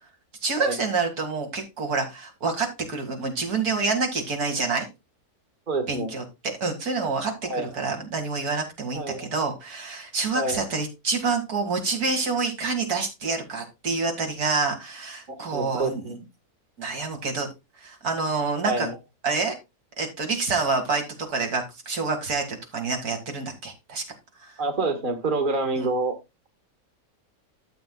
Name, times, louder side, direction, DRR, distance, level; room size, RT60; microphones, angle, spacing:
voice 1, 0.4-4.9 5.9-16.1 16.8-17.5 17.8-18.9 19.2-19.6 20.0-24.0 24.4-24.5 25.8-25.9, right 4 dB, 80° right, 4 dB, 2.6 m, -27 dB
voice 2, 5.7-6.1 7.4-7.9 8.9-9.3 10.3-10.6 15.3-16.2 18.6-19.0 24.6-26.1, right 3 dB, 35° right, 6 dB, 1.5 m, -27 dB
13.0 x 7.3 x 2.3 m, 0.24 s
omnidirectional pair, 1.6 m